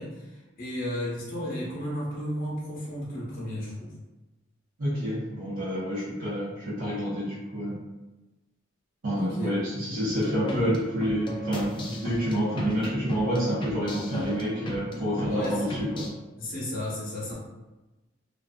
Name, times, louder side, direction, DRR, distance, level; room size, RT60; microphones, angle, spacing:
voice 1, 0.0-3.9 9.2-9.5 15.3-15.7 16.4-17.3, equal, 45° left, -6 dB, 0.7 m, -33 dB
voice 2, 4.8-7.7 9.0-16.1, equal, 75° right, -11 dB, 0.8 m, -28 dB
sound 1, 10.2-16.1, equal, 25° left, 0.3 m, -37 dB
2.5 x 2.2 x 2.2 m, 1.1 s
head